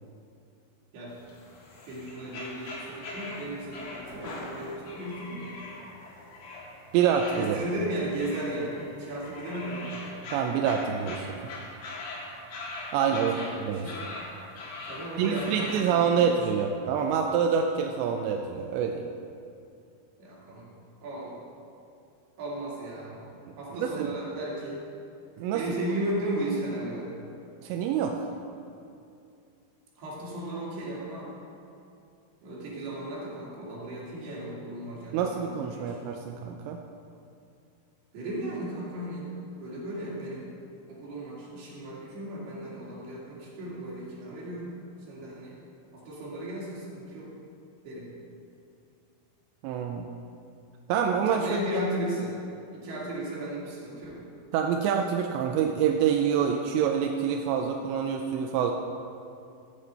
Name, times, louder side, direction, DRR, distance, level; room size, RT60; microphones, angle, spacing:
sound 1, 1.1-15.8, left 2 dB, 55° left, 2.6 m, -41 dB
voice 1, 1.9-5.6 7.3-10.0 13.1-14.1 14.9-16.6 20.2-20.7 21.0-21.3 22.4-23.3 23.6-24.8 25.5-27.1 30.0-31.3 32.4-36.0 38.1-39.3 39.6-40.5 40.9-44.8 45.1-45.6 45.9-47.3 47.8-48.1 51.3-52.4 52.7-54.2, right 1 dB, 60° right, -6 dB, 4.3 m, -35 dB
voice 2, 6.9-7.6 10.3-11.4 12.9-13.9 15.2-19.1 23.8-24.2 25.4-25.6 27.6-28.3 35.1-36.8 49.6-50.1 50.9-51.6 54.5-58.7, right 7 dB, 80° right, 3 dB, 2.6 m, -26 dB
14.5 x 8.5 x 4.3 m, 2.5 s
omnidirectional pair, 5.4 m